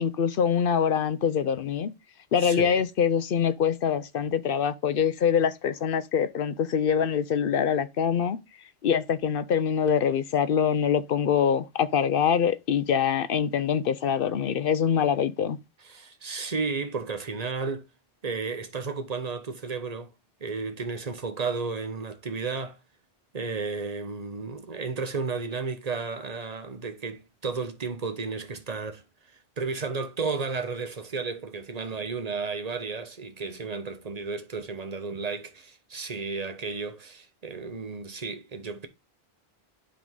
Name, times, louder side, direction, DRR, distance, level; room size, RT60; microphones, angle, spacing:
voice 1, 0.0-1.9 2.3-8.4 8.8-15.6, left 7 dB, 65° left, 0.8 m, -24 dB
voice 2, 2.4-2.8 15.8-17.9 18.2-20.1 20.4-22.8 23.3-29.0 29.6-38.9, right 4 dB, 40° right, 1.1 m, -33 dB
10.0 x 3.9 x 3.6 m
omnidirectional pair, 1.1 m